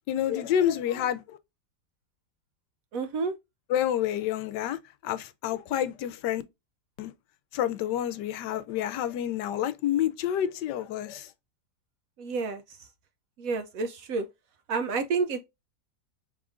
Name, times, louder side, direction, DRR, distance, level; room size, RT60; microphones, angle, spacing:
voice 1, 0.1-1.4 3.7-6.4 7.0-7.1 7.5-11.3, left 10 dB, 85° left, 1.2 m, -28 dB
voice 2, 2.9-3.3 12.2-12.6 13.4-14.3 14.7-15.4, right 4 dB, 70° right, 0.8 m, -29 dB
4.9 x 3.5 x 2.4 m
omnidirectional pair, 1.8 m